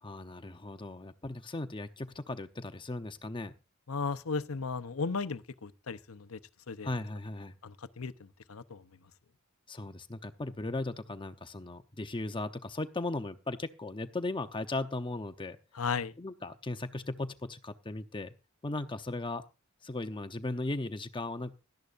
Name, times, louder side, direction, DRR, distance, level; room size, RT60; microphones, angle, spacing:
voice 1, 0.0-3.5 6.8-7.5 9.7-15.6 16.2-18.3 18.6-19.4 19.8-21.5, left 2 dB, 25° left, 0.8 m, -37 dB
voice 2, 3.9-6.4 6.7-6.9 7.6-8.8 15.7-16.1, left 4 dB, 85° left, 0.8 m, -35 dB
17.5 x 13.0 x 2.6 m
head